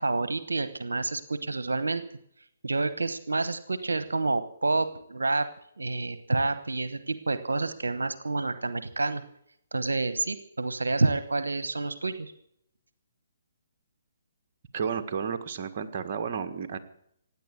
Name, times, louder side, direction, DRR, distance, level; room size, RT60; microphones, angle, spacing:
voice 1, 0.0-2.0 2.6-5.5 5.8-9.2 9.7-12.3, right 3 dB, 90° right, 13 dB, 1.0 m, -28 dB
voice 2, 14.7-16.8, right 6 dB, 45° right, 7 dB, 1.6 m, -32 dB
16.5 x 9.7 x 8.2 m, 0.73 s
hypercardioid pair, 140°, 0 cm